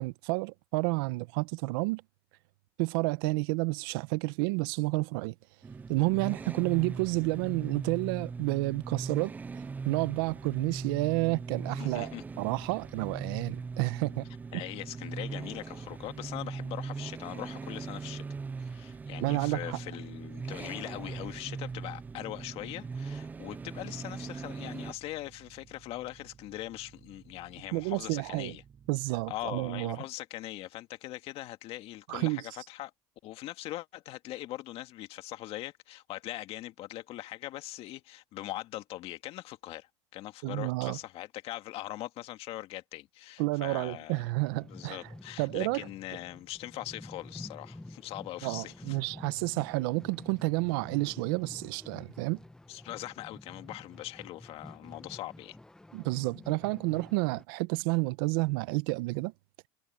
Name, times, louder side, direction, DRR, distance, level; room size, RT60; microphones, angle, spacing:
voice 1, 0.0-2.0 2.8-5.3 5.9-9.3 9.8-14.6 19.2-19.8 27.7-28.5 28.9-30.0 32.1-32.4 40.4-41.0 43.4-45.0 45.4-45.9 48.4-52.4 55.9-59.3, right 24 dB, 75° right, 0.8 m, -30 dB
sound 1, 5.6-24.9, right 4 dB, 15° right, 0.3 m, -40 dB
voice 2, 11.8-12.2 14.5-18.2 18.6-28.6 29.3-32.9 33.2-44.3 44.7-49.0 52.7-55.6, left 15 dB, 55° left, 1.9 m, -41 dB
sound 2, 21.1-29.8, right 7 dB, 30° right, 6.5 m, -58 dB
sound 3, 44.3-57.4, left 1 dB, 5° left, 0.7 m, -49 dB
supercardioid pair, 115°, 12 cm